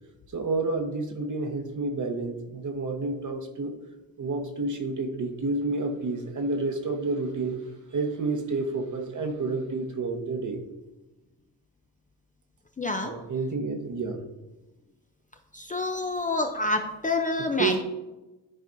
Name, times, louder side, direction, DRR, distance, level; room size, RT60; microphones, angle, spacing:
voice 1, 0.3-3.7 4.2-7.6 7.9-10.6 13.0-14.2 17.6-17.8, right 3 dB, 45° right, 5 dB, 1.1 m, -29 dB
voice 2, 12.8-13.1 15.5-17.8, left 2 dB, 20° left, 4 dB, 0.5 m, -27 dB
12.5 x 4.2 x 2.6 m, 1.1 s
cardioid pair, 85°, 43 cm